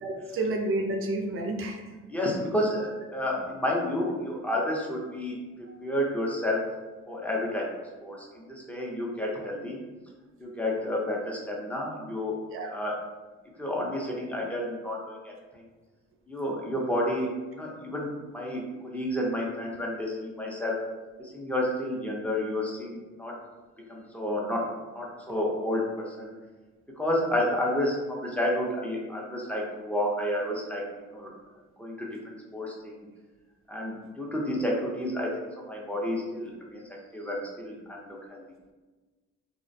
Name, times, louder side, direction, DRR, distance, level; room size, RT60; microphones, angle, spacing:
voice 1, 0.0-1.9 5.7-5.8 12.5-12.7, right 2 dB, 45° right, 2 dB, 0.5 m, -30 dB
voice 2, 2.1-5.4 5.8-6.6 7.1-7.7 8.0-9.8 10.4-12.3 12.6-12.9 13.6-15.3 16.3-20.8 21.2-23.3 23.9-24.6 24.9-26.3 27.0-31.3 31.8-33.1 33.7-35.3 35.7-36.8 37.1-38.4, left 1 dB, 5° left, -3 dB, 0.5 m, -30 dB
2.4 x 2.1 x 2.6 m, 1.3 s
cardioid pair, 90°, 30 cm